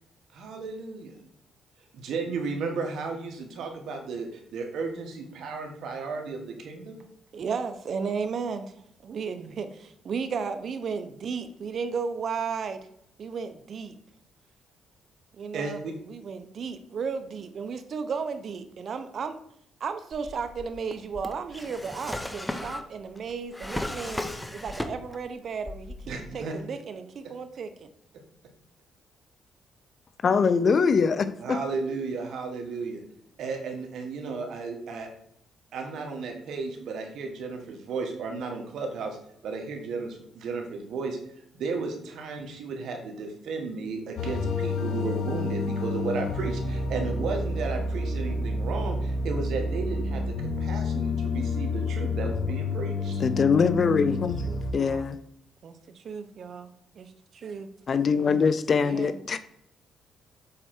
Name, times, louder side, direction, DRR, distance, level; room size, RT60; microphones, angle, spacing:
voice 1, 0.3-1.2 1.9-7.0 15.5-15.9 26.1-26.5 31.4-33.0 33.4-35.1 35.7-39.2 39.4-41.2 41.5-53.2, right 4 dB, 75° right, 3 dB, 1.7 m, -34 dB
voice 2, 7.3-8.7 9.0-12.8 13.2-13.9 15.4-15.8 16.1-19.4 19.8-24.2 24.5-27.9 54.5-55.1 55.6-57.7 58.8-59.2, right 5 dB, 55° right, 9 dB, 0.8 m, -34 dB
Drawer open or close, 20.1-25.3 25.6-26.4, left 1 dB, 10° left, 0.8 m, -36 dB
voice 3, 30.2-31.6 53.2-54.4 54.7-55.2 57.9-59.4, left 5 dB, 45° left, 13 dB, 0.5 m, -23 dB
sound 1, 44.2-54.7, left 2 dB, 80° left, 1.0 m, -29 dB
7.5 x 4.4 x 4.5 m, 0.71 s
cardioid pair, 90°, 0 cm